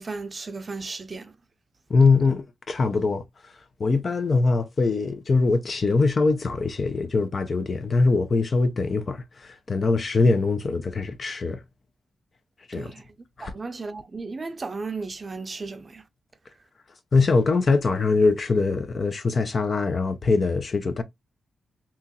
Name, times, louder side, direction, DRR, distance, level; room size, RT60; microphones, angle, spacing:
voice 1, 0.0-1.4 12.7-13.0 13.4-16.0, right 3 dB, 40° right, 0.5 m, -35 dB
voice 2, 1.9-3.2 3.8-9.2 9.4-11.6 12.7-12.9 13.4-13.5 17.1-21.0, left 3 dB, 50° left, 0.7 m, -22 dB
3.0 x 2.6 x 3.6 m
cardioid pair, 65°, 0 cm